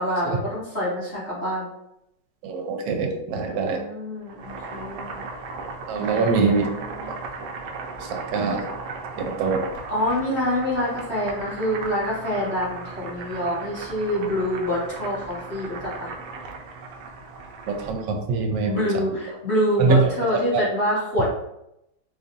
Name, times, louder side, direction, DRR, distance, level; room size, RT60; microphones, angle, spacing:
voice 1, 0.0-1.6 3.5-5.2 5.9-7.1 9.9-16.1 18.6-21.3, equal, 40° left, -9 dB, 1.5 m, -26 dB
voice 2, 2.4-3.8 5.9-6.7 8.0-8.6 9.2-9.7 17.7-18.8 19.8-20.1 20.5-20.6, right 4 dB, 90° right, 4 dB, 1.3 m, -23 dB
Boiling, 4.2-18.0, right 3 dB, 75° right, 1.1 m, -36 dB
4.1 x 2.4 x 2.6 m, 0.83 s
omnidirectional pair, 1.9 m